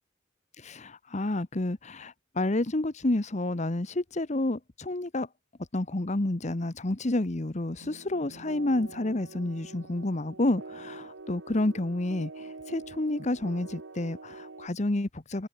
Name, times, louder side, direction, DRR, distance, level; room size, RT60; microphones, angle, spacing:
voice 1, 0.6-5.3 5.7-15.5, left 2 dB, 35° left, 1.0 m, -30 dB
sound 1, 7.8-14.7, right 3 dB, 75° right, 1.2 m, -45 dB
head